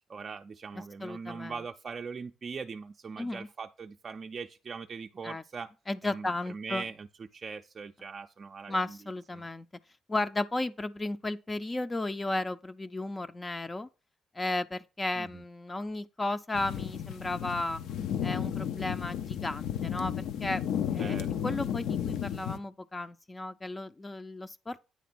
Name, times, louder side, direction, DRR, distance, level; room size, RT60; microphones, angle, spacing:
voice 1, 0.1-5.7 6.0-7.1 7.3-9.0 9.3-9.5 15.2-15.3 21.0-21.3, right 5 dB, 40° right, 0.4 m, -41 dB
voice 2, 1.0-1.6 3.2-3.5 5.2-5.4 5.9-6.8 8.7-9.7 10.1-13.9 14.3-17.8 18.2-20.6 20.9-21.2 21.4-24.8, left 2 dB, 20° left, 0.4 m, -34 dB
sound 1, 16.5-22.6, left 9 dB, 85° left, 0.6 m, -33 dB
9.3 x 3.3 x 5.9 m
cardioid pair, 90°, 0 cm